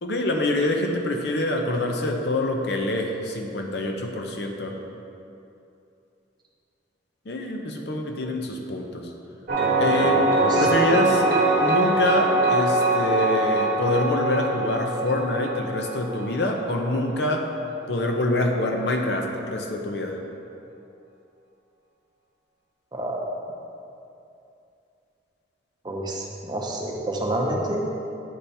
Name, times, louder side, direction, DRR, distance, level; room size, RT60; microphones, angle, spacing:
voice 1, 0.0-4.8 7.3-9.1 9.8-10.2 10.6-11.2 11.6-17.5 17.9-20.2, left 2 dB, 60° left, 2 dB, 0.6 m, -26 dB
sound 1, 9.5-17.0, right 2 dB, 50° right, 1.0 m, -22 dB
voice 2, 10.4-10.7 22.9-23.3 25.8-27.9, right 1 dB, 25° right, -1 dB, 0.6 m, -28 dB
9.2 x 3.4 x 4.2 m, 2.7 s
head